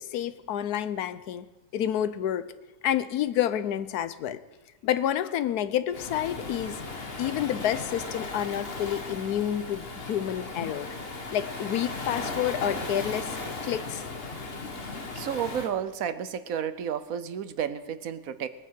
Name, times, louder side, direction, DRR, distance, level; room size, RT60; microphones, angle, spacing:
voice 1, 0.0-1.5 1.7-2.5 2.8-4.4 4.8-6.8 7.2-10.9 11.3-13.3 13.6-14.0, left 10 dB, 80° left, 14 dB, 1.3 m, -29 dB
Waves surf, 5.9-15.7, left 3 dB, 40° left, 1.8 m, -36 dB
voice 2, 15.1-18.5, right 8 dB, 65° right, 13 dB, 1.2 m, -31 dB
19.0 x 9.4 x 7.4 m, 1.1 s
omnidirectional pair, 1.7 m